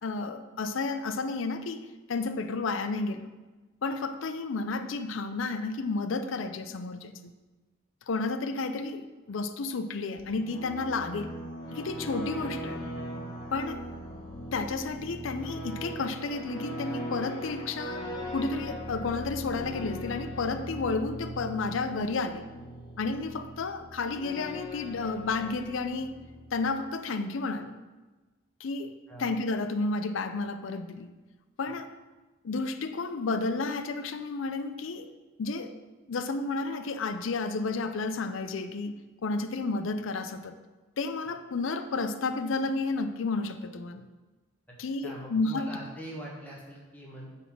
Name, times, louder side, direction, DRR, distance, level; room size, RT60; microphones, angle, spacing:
voice 1, 0.0-3.3 3.8-7.3 8.1-11.3 11.7-12.8 13.5-13.8 14.5-22.5 23.0-26.2 26.5-27.7 28.6-28.9 29.2-31.1 31.6-31.9 32.4-35.1 35.4-35.8 36.1-40.6 41.0-44.1 44.8-45.7, left 3 dB, 75° left, 10 dB, 0.5 m, -32 dB
sound 1, 10.2-26.8, equal, 25° left, 1.4 m, -40 dB
voice 2, 45.0-47.3, right 1 dB, 10° left, -4 dB, 1.5 m, -42 dB
9.1 x 4.1 x 6.0 m, 1.2 s
head